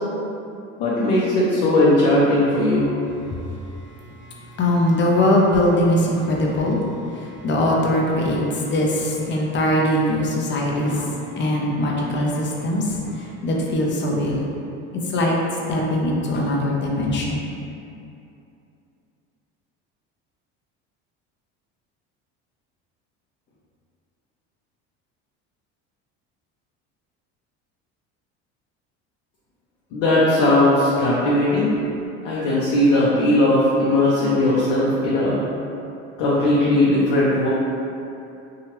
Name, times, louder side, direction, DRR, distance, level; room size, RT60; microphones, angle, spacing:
voice 1, 0.8-2.9 29.9-31.7 32.2-35.4 36.2-37.5, left 1 dB, 75° left, -7 dB, 0.7 m, -18 dB
voice 2, 4.6-6.8 7.1-14.4 15.1-15.3 15.7-17.4, left 1 dB, 35° left, -2 dB, 0.6 m, -21 dB
2.9 x 2.3 x 3.0 m, 2.7 s
supercardioid pair, 90°, 33 cm